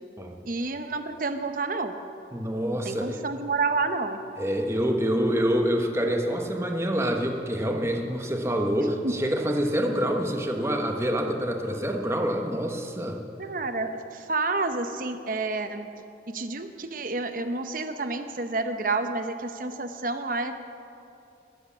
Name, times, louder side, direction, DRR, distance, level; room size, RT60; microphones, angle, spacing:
voice 1, 0.4-1.9 2.8-4.2 9.0-9.1 13.4-15.9 16.3-20.6, right 3 dB, 45° right, 8 dB, 0.9 m, -29 dB
voice 2, 2.3-3.2 4.4-13.2, equal, 15° right, 3 dB, 1.1 m, -26 dB
20.5 x 8.1 x 7.2 m, 2.7 s
head